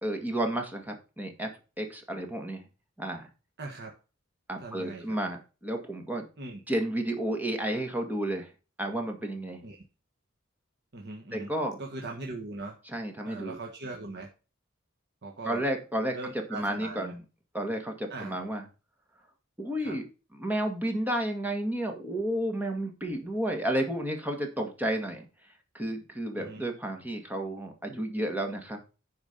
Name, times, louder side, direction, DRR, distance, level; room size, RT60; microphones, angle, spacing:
voice 1, 0.0-1.5 1.8-2.6 3.0-3.3 4.5-6.2 6.7-8.5 8.8-9.6 11.3-11.8 12.9-13.5 15.5-16.2 16.5-17.2 17.5-18.6 19.6-20.1 20.4-25.3 25.7-28.8, right 1 dB, 10° right, 3 dB, 1.9 m, -31 dB
voice 2, 3.6-3.9 4.6-5.2 6.4-6.6 9.6-9.8 10.9-11.5 11.8-12.8 13.2-14.3 15.2-15.6 16.1-17.1 18.1-18.4 19.8-20.0 26.3-26.6, right 2 dB, 60° right, 1 dB, 1.4 m, -40 dB
10.5 x 4.8 x 5.2 m, 0.32 s
head